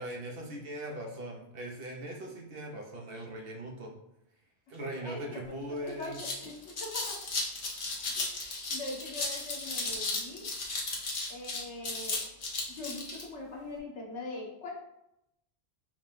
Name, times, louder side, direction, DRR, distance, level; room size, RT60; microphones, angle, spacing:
voice 1, 0.0-3.9 4.7-6.2, right 1 dB, 60° right, 0 dB, 0.9 m, -40 dB
voice 2, 5.0-5.4 5.8-7.3 8.1-10.5 11.3-12.2 12.7-14.7, left 2 dB, 85° left, -1 dB, 1.3 m, -42 dB
sound 1, 5.4-5.5 5.9-13.2, left 3 dB, 50° left, 1.0 m, -35 dB
4.8 x 2.2 x 3.6 m, 0.82 s
omnidirectional pair, 1.1 m